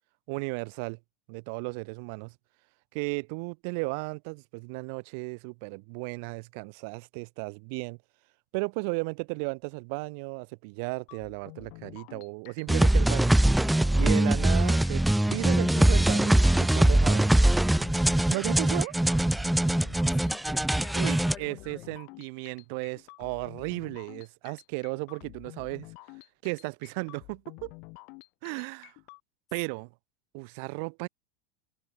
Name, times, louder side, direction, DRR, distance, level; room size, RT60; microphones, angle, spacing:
voice 1, 0.3-1.0 1.3-2.3 2.9-8.0 8.5-13.4 13.9-15.0 15.3-17.3 18.3-18.9 20.9-25.9 26.4-27.7 28.4-28.9 29.5-29.9 30.3-31.1, right 34 dB, 60° right, 1.2 m, -35 dB
sound 1, 11.1-29.2, left 31 dB, 55° left, 5.8 m, -49 dB
sound 2, 12.7-21.3, right 1 dB, 5° right, 0.3 m, -22 dB
voice 2, 19.6-21.9, left 8 dB, 30° left, 3.8 m, -48 dB
open air
supercardioid pair, 120°, 0 cm